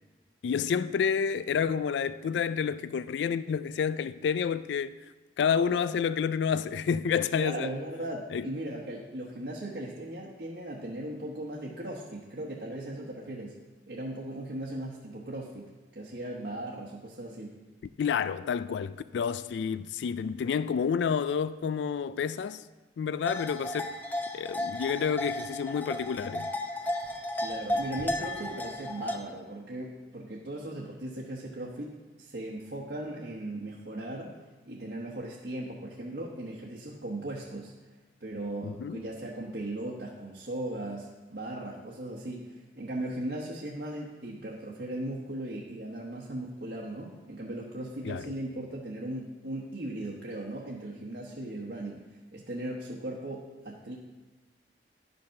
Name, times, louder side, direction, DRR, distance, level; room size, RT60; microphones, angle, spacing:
voice 1, 0.4-5.1 5.4-7.7 8.3-8.5 18.0-22.7 23.0-24.0 24.3-26.5 38.6-39.0 48.0-48.3, left 7 dB, 80° left, 0.3 m, -29 dB
voice 2, 7.4-13.5 13.9-15.7 15.9-17.5 27.4-34.3 34.7-37.7 38.2-52.0 52.3-54.0, right 1 dB, 65° right, 1.1 m, -38 dB
sound 1, 23.2-29.2, left 1 dB, 10° left, 0.6 m, -34 dB
11.0 x 5.4 x 5.7 m
head